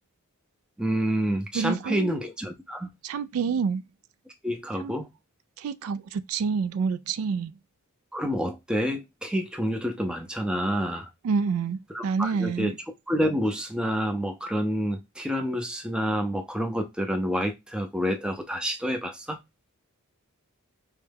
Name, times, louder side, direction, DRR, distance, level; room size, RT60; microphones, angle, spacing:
voice 1, 0.8-2.9 4.4-5.1 8.1-11.1 11.9-12.8 13.1-19.4, equal, 5° right, 0.5 m, -28 dB
voice 2, 1.5-2.2 3.0-3.8 4.8-4.9 5.6-7.5 11.2-12.7, right 5 dB, 70° right, 0.3 m, -28 dB
4.5 x 2.1 x 3.3 m
head